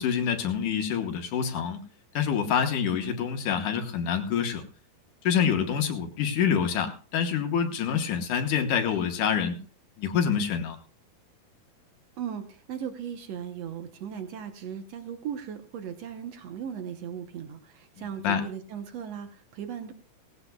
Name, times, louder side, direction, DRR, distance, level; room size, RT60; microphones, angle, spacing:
voice 1, 0.0-1.8 2.1-4.6 5.2-9.6 10.0-10.8 18.0-18.4, left 7 dB, 65° left, 6 dB, 2.4 m, -26 dB
voice 2, 12.2-19.9, right 8 dB, 80° right, 7 dB, 1.4 m, -37 dB
18.5 x 16.0 x 2.3 m, 0.38 s
omnidirectional pair, 4.3 m